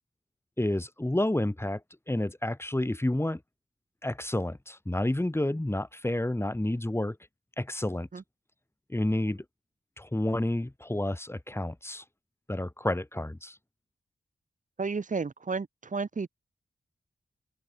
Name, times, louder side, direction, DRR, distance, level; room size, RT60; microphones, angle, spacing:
voice 1, 0.6-1.8 2.1-3.4 4.0-7.2 7.6-8.1 8.9-9.4 10.0-12.0 12.5-13.6, left 1 dB, 15° left, 2.9 m, -30 dB
voice 2, 14.8-16.3, right 4 dB, 50° right, 1.7 m, -32 dB
cardioid pair, 50°, 17 cm